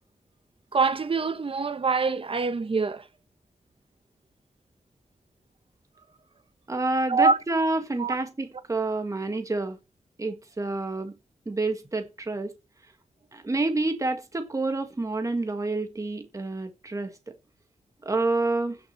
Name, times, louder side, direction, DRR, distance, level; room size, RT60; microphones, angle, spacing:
voice 1, 0.7-3.1 7.1-7.4 8.0-8.1, right 4 dB, 45° right, 1.2 m, -24 dB
voice 2, 6.7-9.8 10.2-11.1 11.4-12.5 13.3-17.1 18.0-18.8, right 2 dB, 25° right, 1.6 m, -28 dB
9.7 x 6.5 x 7.2 m
wide cardioid pair, 140°, 13 cm